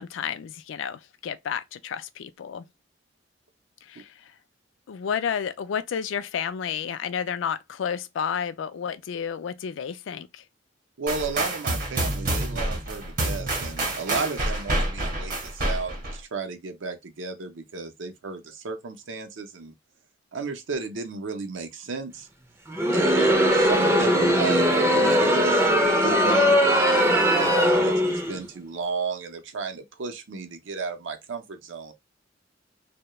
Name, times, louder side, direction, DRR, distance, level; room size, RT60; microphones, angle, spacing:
voice 1, 0.0-2.7 3.8-4.3 4.9-10.4, left 7 dB, 80° left, 0.3 m, -31 dB
voice 2, 11.0-19.7 20.3-22.3 22.9-31.9, right 4 dB, 75° right, 0.6 m, -33 dB
sound 1, 11.1-16.2, right 1 dB, 50° right, 0.9 m, -28 dB
Crowd, 22.7-28.4, equal, 15° right, 0.4 m, -20 dB
2.2 x 2.1 x 2.9 m
head